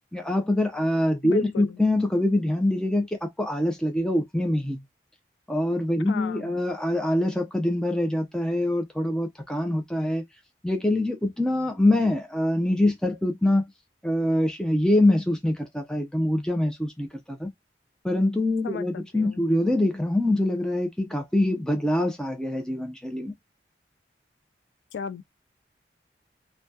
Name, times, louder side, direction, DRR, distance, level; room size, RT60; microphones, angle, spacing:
voice 1, 0.1-4.8 5.5-10.2 10.6-13.6 14.0-17.5 18.0-23.3, left 1 dB, 5° left, 0.4 m, -24 dB
voice 2, 1.2-1.8 6.1-6.5 18.6-19.4 24.9-25.2, left 6 dB, 85° left, 0.3 m, -36 dB
2.7 x 2.1 x 2.2 m
head